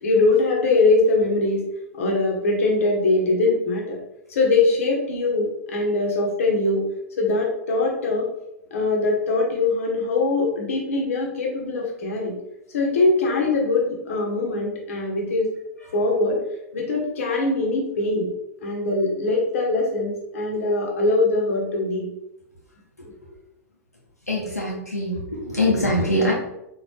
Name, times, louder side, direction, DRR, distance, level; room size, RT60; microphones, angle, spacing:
voice 1, 0.0-1.6 2.0-4.0 4.3-6.8 7.2-8.3 8.7-12.3 12.7-15.5 15.9-16.4 16.7-18.3 18.6-22.1, left 3 dB, 60° left, -1 dB, 1.0 m, -22 dB
voice 2, 24.3-26.3, left 1 dB, 85° left, -4 dB, 0.8 m, -23 dB
4.1 x 2.5 x 3.2 m, 0.84 s
figure-of-eight pair, 95°, 8 cm